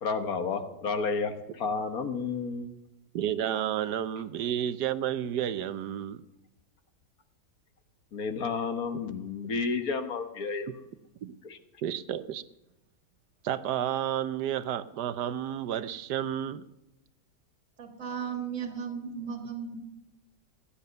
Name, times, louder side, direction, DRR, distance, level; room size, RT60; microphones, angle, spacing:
voice 1, 0.0-2.7 8.1-10.7 11.4-11.6, left 4 dB, 60° left, 8 dB, 1.7 m, -31 dB
voice 2, 3.1-6.2 10.7-10.8 11.2-11.4 11.8-12.4 13.4-16.6, right 10 dB, 75° right, 14 dB, 1.3 m, -31 dB
voice 3, 17.8-19.8, right 7 dB, 50° right, 6 dB, 2.1 m, -35 dB
16.0 x 10.0 x 6.8 m, 0.93 s
omnidirectional pair, 1.8 m